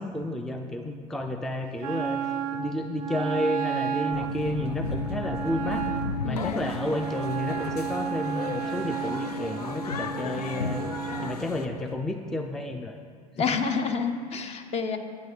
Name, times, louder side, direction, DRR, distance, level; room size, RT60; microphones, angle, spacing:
voice 1, 0.0-2.2 2.5-5.8 6.2-10.9 11.2-13.0, left 1 dB, ahead, 5 dB, 0.3 m, -31 dB
Wind instrument woodwind instrument, 1.8-11.4, right 8 dB, 75° right, 0.4 m, -33 dB
sound 1, 4.1-11.9, left 4 dB, 85° left, 0.4 m, -34 dB
voice 2, 6.2-6.7 13.4-15.0, left 5 dB, 35° left, 8 dB, 0.7 m, -28 dB
9.0 x 8.0 x 3.3 m, 2.1 s
figure-of-eight pair, 80°, 19 cm